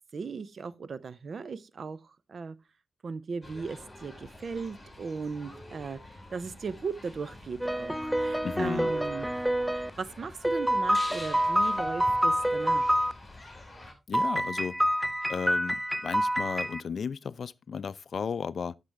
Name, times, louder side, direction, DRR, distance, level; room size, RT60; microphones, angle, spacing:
voice 1, 0.1-2.6 3.0-9.2 9.7-12.9, right 5 dB, 60° right, 0.7 m, -37 dB
sound 1, 3.4-13.9, left 2 dB, 20° left, 4.8 m, -47 dB
sound 2, 7.6-9.9 10.4-13.1 14.1-16.8, equal, 5° right, 0.4 m, -27 dB
voice 2, 8.4-8.9 14.1-14.8 15.3-18.8, left 6 dB, 65° left, 0.4 m, -34 dB
9.9 x 6.8 x 3.3 m
cardioid pair, 70°, 0 cm